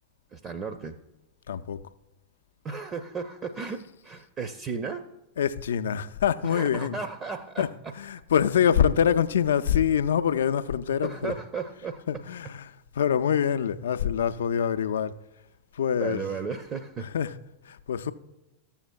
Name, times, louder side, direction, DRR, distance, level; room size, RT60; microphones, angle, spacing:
voice 1, 0.3-1.0 2.6-5.0 6.4-7.7 11.0-12.0 16.0-17.1, right 5 dB, 30° right, 0.5 m, -34 dB
voice 2, 1.5-1.9 5.4-7.0 7.6-11.3 12.1-15.1 15.7-16.2 17.0-17.3 17.6-18.1, left 8 dB, 65° left, 0.4 m, -25 dB
14.0 x 7.1 x 2.2 m
figure-of-eight pair, 90°, 0 cm